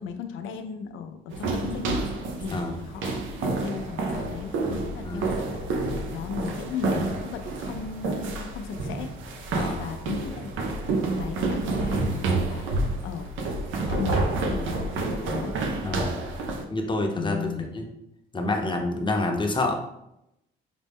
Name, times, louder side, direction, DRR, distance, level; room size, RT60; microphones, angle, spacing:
voice 1, 0.0-9.1 9.5-12.7 13.0-13.3 13.9-15.6 17.1-17.7, left 6 dB, 85° left, 7 dB, 0.5 m, -36 dB
sound 1, 1.3-16.6, right 2 dB, 80° right, 0.6 m, -29 dB
voice 2, 2.5-2.8 5.0-5.3 9.5-9.9 15.8-16.2 16.7-17.9 18.3-19.7, left 2 dB, 25° left, 2 dB, 0.7 m, -28 dB
5.0 x 2.1 x 3.5 m, 0.84 s
cardioid pair, 90°, 20 cm